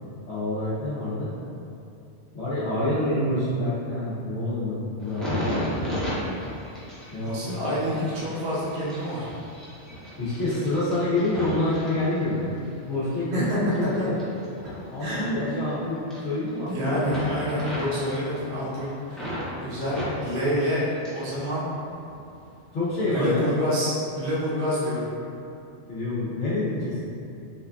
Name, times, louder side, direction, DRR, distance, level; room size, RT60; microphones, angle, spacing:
voice 1, 0.3-1.3 2.3-6.0 7.1-7.8 10.2-12.4 12.8-13.4 13.9-14.2 14.9-17.0 22.7-23.4 25.9-27.0, left 2 dB, 80° left, -12 dB, 1.2 m, -27 dB
sound 1, 5.0-12.7 13.1-15.7 16.0-16.7 17.0-19.5 19.8-21.4 21.7-22.4 22.9-23.2, equal, ahead, 0.5 m, -35 dB
voice 2, 7.2-9.3 13.3-13.6 14.0-14.1 15.0-15.2 16.7-19.3 19.6-21.7 23.1-25.1, equal, 70° right, -8 dB, 1.1 m, -27 dB
4.2 x 2.5 x 2.3 m, 2.7 s
omnidirectional pair, 1.2 m